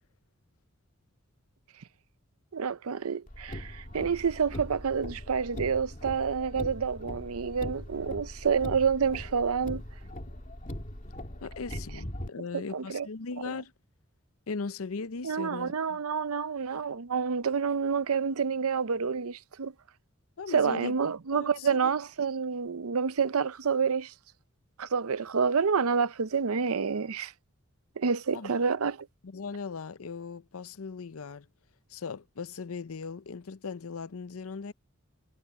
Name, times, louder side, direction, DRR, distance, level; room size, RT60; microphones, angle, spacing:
voice 1, 2.5-9.8 12.5-13.1 15.2-19.7 20.5-24.1 24.8-27.3 28.0-29.1, right 6 dB, 85° right, 0.6 m, -28 dB
Car, 3.3-12.3, left 1 dB, 35° left, 2.4 m, -40 dB
voice 2, 11.4-13.7 14.5-16.0 20.4-21.0 21.3-21.9 28.3-28.5 29.2-31.5 31.9-34.7, left 4 dB, 75° left, 0.6 m, -38 dB
head